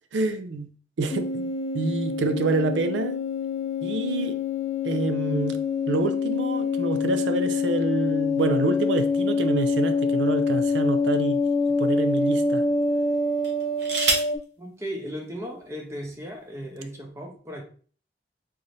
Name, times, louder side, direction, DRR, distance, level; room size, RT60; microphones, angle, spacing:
voice 1, 0.1-0.7 1.0-1.5 1.7-3.2 3.8-4.4 4.8-5.6 5.9-11.4 11.8-12.6, right 3 dB, 85° right, 0.4 m, -27 dB
sound 1, 1.1-14.4, left 4 dB, 35° left, 0.3 m, -25 dB
sound 2, 9.6-10.9 11.6-11.7 13.4-14.4 15.6-15.7 16.0-16.4, right 3 dB, 65° right, 0.9 m, -29 dB
voice 2, 14.6-17.6, equal, 15° right, 0.6 m, -36 dB
3.9 x 2.7 x 3.1 m
head